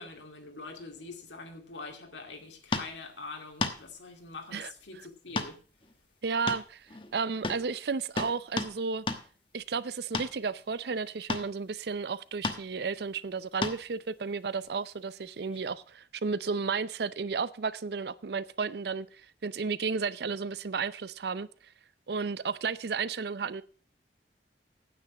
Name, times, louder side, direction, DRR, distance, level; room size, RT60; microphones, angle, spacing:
voice 1, 0.0-5.6, left 3 dB, 85° left, 2.4 m, -44 dB
sound 1, 2.7-2.9 3.6-3.8 5.4-5.5 5.8-5.9 6.5-7.1 7.4-7.6 8.2-8.8 9.1-9.2 10.1-10.3 11.3-11.5 12.4-12.6 13.6-13.9 15.5-15.6, left 3 dB, 30° left, 1.1 m, -32 dB
voice 2, 6.2-9.0 9.5-19.1 19.4-21.5 22.1-23.6, right 5 dB, 65° right, 0.5 m, -33 dB
9.5 x 8.4 x 6.0 m
head